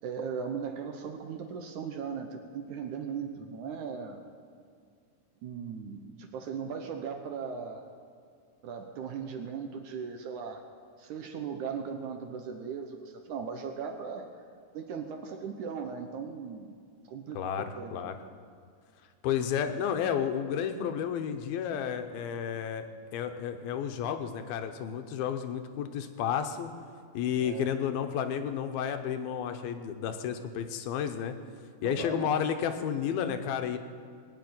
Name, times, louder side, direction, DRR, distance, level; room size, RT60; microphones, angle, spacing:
voice 1, 0.0-4.2 5.4-7.9 8.6-10.6 11.0-14.3 14.7-16.8 17.1-18.1 27.4-27.7 31.8-32.4, right 6 dB, 70° right, 4 dB, 2.1 m, -38 dB
voice 2, 17.3-18.1 19.2-22.9 23.1-26.7 27.1-31.4 31.8-33.8, left 8 dB, 90° left, 8 dB, 2.8 m, -31 dB
20.0 x 6.8 x 9.5 m, 2.2 s
omnidirectional pair, 4.2 m